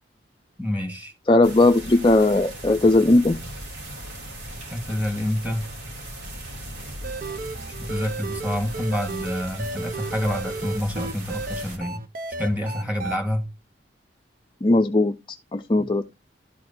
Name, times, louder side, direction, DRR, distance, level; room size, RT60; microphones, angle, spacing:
voice 1, 0.6-1.1 4.7-5.7 7.8-12.0 12.4-13.4 15.8-15.9, left 1 dB, 10° right, 2.3 m, -27 dB
voice 2, 1.3-3.4 14.6-16.1, left 2 dB, 25° left, 0.5 m, -18 dB
sound 1, 1.4-11.8, right 1 dB, 70° right, 3.4 m, -38 dB
sound 2, 7.0-13.2, right 3 dB, 50° right, 0.7 m, -33 dB
12.0 x 4.8 x 4.2 m
head